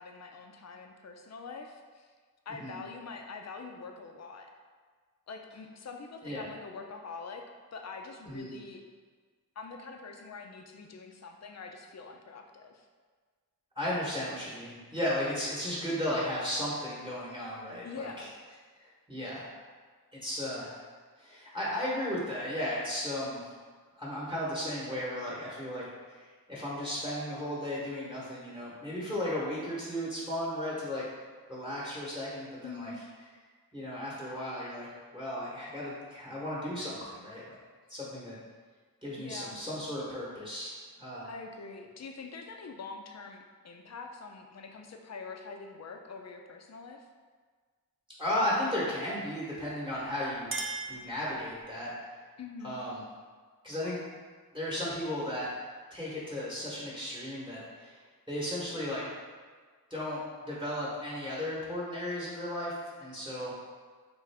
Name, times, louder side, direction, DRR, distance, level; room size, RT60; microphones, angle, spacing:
voice 1, 0.0-2.1 2.5-4.5 5.3-7.4 7.7-8.8 9.6-12.9 17.8-18.3 32.6-33.0 39.2-39.6 41.3-47.1 52.4-52.8, left 4 dB, 50° left, 4 dB, 0.5 m, -44 dB
voice 2, 13.8-18.1 19.1-19.5 20.2-20.8 21.2-23.4 24.0-25.8 26.1-31.0 31.5-32.9 33.7-37.6 37.9-38.3 39.0-41.3 48.2-50.6 50.9-52.1 52.6-53.0 53.6-54.0 54.5-55.5 55.9-58.0 58.3-59.0 59.9-62.7 63.0-63.5, left 1 dB, 15° right, -7 dB, 1.0 m, -35 dB
Chink clink, 49.9-51.8, right 3 dB, 35° right, 0.5 m, -40 dB
3.6 x 2.5 x 3.3 m, 1.5 s
cardioid pair, 50°, 36 cm